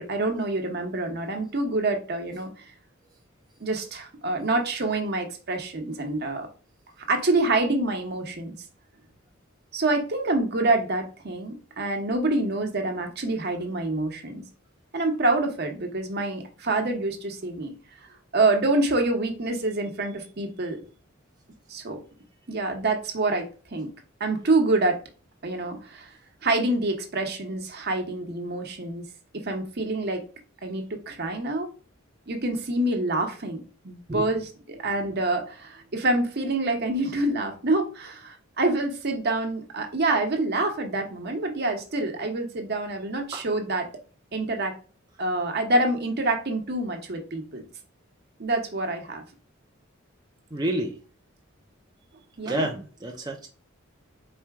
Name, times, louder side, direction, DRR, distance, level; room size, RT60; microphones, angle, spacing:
voice 1, 0.0-2.5 3.6-6.5 7.1-8.5 9.7-14.4 14.9-17.7 18.3-20.8 21.7-22.0 22.5-23.5 23.7-23.9 24.2-25.0 25.4-26.1 26.4-29.0 29.4-30.2 30.6-31.7 32.3-43.9 44.3-44.7 45.2-47.6 48.4-49.2 52.4-52.7, right 2 dB, 50° right, 4 dB, 0.9 m, -26 dB
voice 2, 50.5-51.0 52.5-53.5, right 1 dB, 20° right, 1 dB, 0.5 m, -29 dB
4.3 x 2.2 x 4.6 m, 0.37 s
head